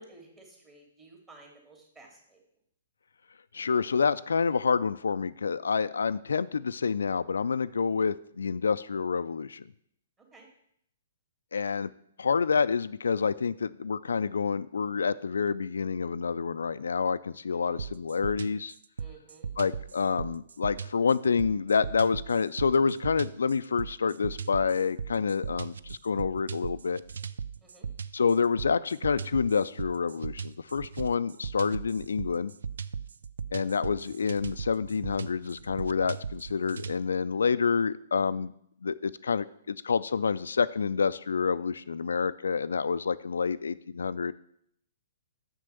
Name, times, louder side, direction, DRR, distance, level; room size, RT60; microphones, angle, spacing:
voice 1, 0.0-2.4 10.3-10.5 17.5-17.8 19.0-19.5 27.6-27.9, right 2 dB, 20° right, 0 dB, 2.8 m, -53 dB
voice 2, 3.5-9.6 11.5-11.9 12.2-18.7 19.6-27.0 28.1-32.5 33.5-38.5 38.8-44.3, left 5 dB, 75° left, 14 dB, 0.3 m, -28 dB
sound 1, 17.8-37.0, right 6 dB, 70° right, 0.4 m, -38 dB
6.8 x 6.3 x 6.7 m, 0.71 s
figure-of-eight pair, 125°, 0 cm